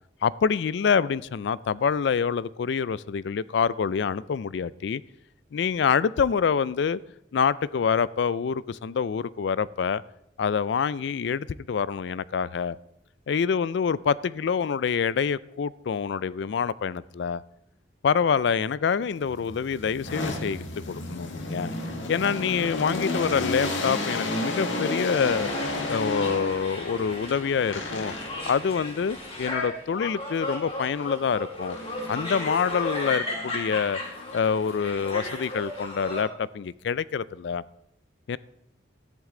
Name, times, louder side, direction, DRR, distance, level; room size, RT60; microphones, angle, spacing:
voice 1, 0.2-5.0 5.5-7.0 7.3-10.0 10.4-12.8 13.3-17.4 18.0-21.7 22.1-28.1 28.4-31.8 32.1-34.0 34.3-37.6 38.3-38.4, left 6 dB, 65° left, 0.3 m, -26 dB
sound 1, 19.2-26.8 27.7-28.5 31.7-32.5 33.0-35.4, left 2 dB, 80° left, 1.7 m, -32 dB
sound 2, 25.2-36.2, left 1 dB, 30° left, 2.7 m, -35 dB
13.5 x 10.5 x 3.8 m
head